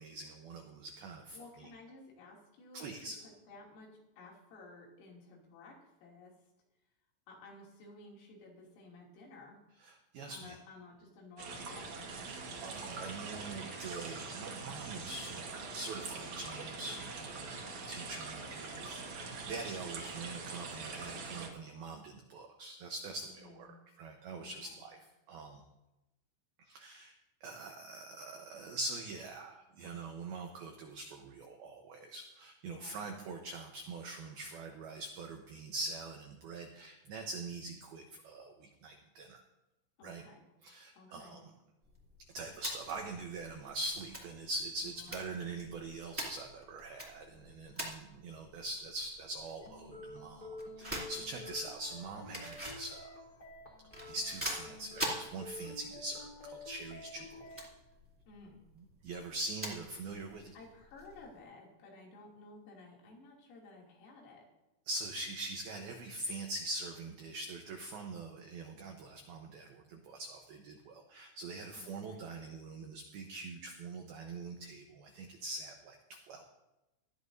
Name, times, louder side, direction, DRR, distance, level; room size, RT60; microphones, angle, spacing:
voice 1, 0.0-1.4 2.7-3.2 9.8-10.5 12.2-17.6 17.9-23.7 24.0-25.0 25.3-25.6 26.7-27.1 27.4-39.4 40.0-40.2 40.6-41.4 42.3-53.2 54.1-57.6 59.0-60.5 64.9-76.4, right 2 dB, 90° right, 3 dB, 2.1 m, -43 dB
voice 2, 1.3-6.3 7.3-9.6 10.3-12.1 23.2-23.7 24.4-24.8 32.7-33.4 40.0-40.4 41.0-41.4 44.8-45.5 58.3-58.6 60.5-64.5 71.8-72.2, left 3 dB, 85° left, -2 dB, 5.4 m, -55 dB
sound 1, 11.4-21.5, right 4 dB, 65° right, 1.9 m, -43 dB
sound 2, 41.8-61.4, right 1 dB, 5° right, 1.4 m, -46 dB
sound 3, 49.6-57.6, left 2 dB, 25° left, 2.3 m, -49 dB
18.0 x 13.5 x 2.7 m, 0.97 s
omnidirectional pair, 5.8 m